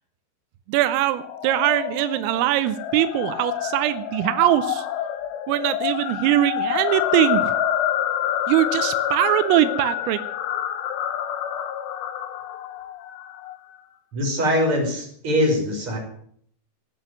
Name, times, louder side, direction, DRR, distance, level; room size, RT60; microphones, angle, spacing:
voice 1, 0.7-4.9 5.5-7.5 8.5-10.2, right 13 dB, 85° right, 12 dB, 3.4 m, -21 dB
sound 1, 1.1-13.6, left 10 dB, 70° left, 2.9 m, -27 dB
voice 2, 14.1-16.0, equal, 25° right, 0 dB, 5.7 m, -22 dB
18.5 x 7.7 x 9.3 m, 0.63 s
omnidirectional pair, 5.8 m